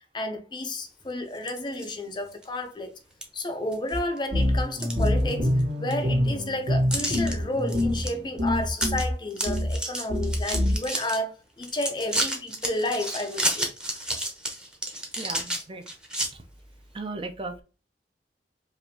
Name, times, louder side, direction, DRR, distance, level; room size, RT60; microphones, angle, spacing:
voice 1, 0.1-2.9 3.3-13.7, left 1 dB, 25° left, 0.5 m, -31 dB
sound 1, 1.3-1.9 2.4-2.5 3.2-3.3 3.7-4.2 4.6-5.6 5.9-6.0 6.9-7.3 7.7-8.1 8.4-8.5 8.7-9.0 9.3-11.2 11.6-16.3, right 1 dB, 5° right, 0.9 m, -31 dB
sound 2, 3.9-4.0 4.3-9.1 9.5-9.8 10.1-10.8, left 1 dB, 85° right, 1.4 m, -25 dB
voice 2, 15.2-15.8 16.9-17.6, right 2 dB, 30° right, 0.6 m, -36 dB
4.9 x 2.6 x 2.8 m
head